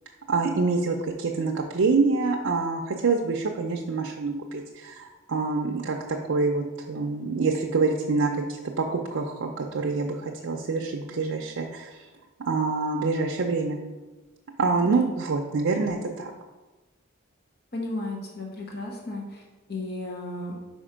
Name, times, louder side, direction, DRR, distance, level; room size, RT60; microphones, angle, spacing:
voice 1, 0.3-12.0 12.4-13.8 14.6-16.3, right 4 dB, 80° right, 1 dB, 0.5 m, -26 dB
voice 2, 17.7-19.4 19.7-20.5, left 2 dB, 50° left, 0 dB, 0.9 m, -34 dB
5.0 x 4.3 x 5.0 m, 1.2 s
head